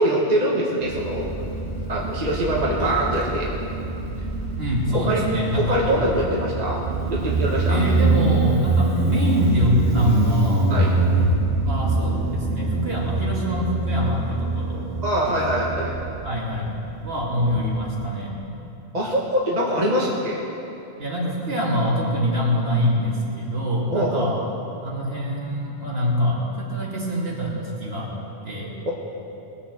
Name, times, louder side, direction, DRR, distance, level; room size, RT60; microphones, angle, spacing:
voice 1, 0.0-1.3 1.9-3.5 4.9-5.2 5.5-6.8 7.1-7.8 8.7-8.8 10.7-10.9 15.0-16.0 18.9-20.4 23.9-24.3, right 1 dB, 35° right, -4 dB, 1.6 m, -23 dB
Motorcycle, 0.8-18.0, right 2 dB, 80° right, 2.1 m, -25 dB
voice 2, 4.6-5.8 7.7-10.7 11.1-11.2 11.7-14.9 16.2-16.7 17.0-18.4 21.0-24.5 24.8-28.1 28.4-28.9, equal, 60° right, -4 dB, 2.6 m, -24 dB
19.5 x 7.0 x 7.5 m, 2.9 s
omnidirectional pair, 1.2 m